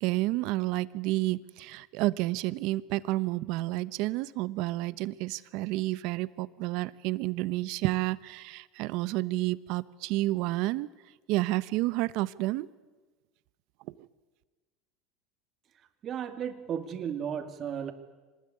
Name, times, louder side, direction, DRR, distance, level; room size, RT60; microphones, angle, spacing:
voice 1, 0.0-10.9 11.3-12.7 14.0-14.1, right 18 dB, 65° right, 17 dB, 1.0 m, -30 dB
voice 2, 16.0-17.9, right 8 dB, 40° right, 7 dB, 2.5 m, -34 dB
25.5 x 20.0 x 9.8 m, 1.3 s
supercardioid pair, 105°, 0 cm